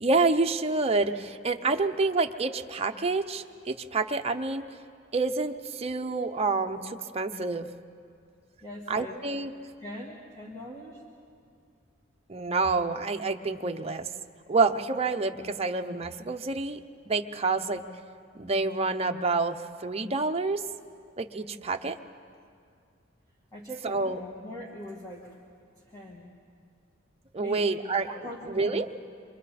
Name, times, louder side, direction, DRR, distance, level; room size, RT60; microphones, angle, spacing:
voice 1, 0.0-4.6 5.1-7.7 8.9-9.5 12.3-14.1 14.5-17.8 18.3-20.6 21.2-22.0 23.8-24.2 27.3-28.1 28.5-28.9, right 3 dB, 30° right, 5 dB, 0.7 m, -28 dB
voice 2, 8.6-9.2 9.8-11.0 23.5-25.3 25.9-26.3 27.4-27.6 28.1-28.9, equal, 20° left, -3 dB, 2.1 m, -41 dB
27.5 x 24.5 x 4.2 m, 2.2 s
head